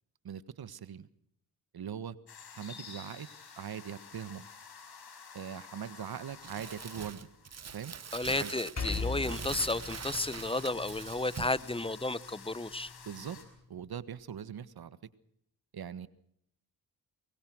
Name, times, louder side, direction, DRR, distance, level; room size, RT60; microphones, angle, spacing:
voice 1, 0.2-1.1 1.7-2.2 2.5-3.3 3.6-4.5 5.3-7.3 7.7-7.9 8.4-8.5 13.0-13.4 13.7-15.0 15.7-16.1, right 8 dB, 60° right, 15 dB, 1.6 m, -41 dB
sound 1, 2.3-13.4, left 6 dB, 65° left, 5.5 m, -51 dB
Crumpling crinkling, 6.4-11.6, right 7 dB, 40° right, 1.1 m, -44 dB
voice 2, 8.1-12.9, left 2 dB, 15° left, 18 dB, 1.1 m, -33 dB
Percussion, 8.8-13.5, left 3 dB, 40° left, 5.6 m, -41 dB
23.5 x 21.5 x 6.4 m, 0.71 s
supercardioid pair, 55°, 41 cm